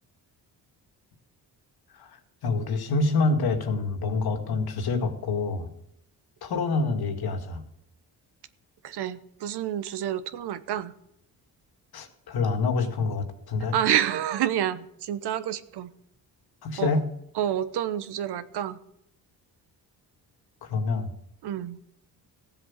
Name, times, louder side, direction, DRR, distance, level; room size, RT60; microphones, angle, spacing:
voice 1, 1.9-5.7 6.4-7.6 11.9-13.7 16.6-17.0 20.6-21.1, left 3 dB, 70° left, 6 dB, 2.2 m, -27 dB
voice 2, 8.8-10.9 13.7-15.9 16.8-16.9 17.4-18.8 21.4-21.8, right 10 dB, 80° right, 13 dB, 1.1 m, -28 dB
15.5 x 7.8 x 7.4 m, 0.75 s
cardioid pair, 100°, 40 cm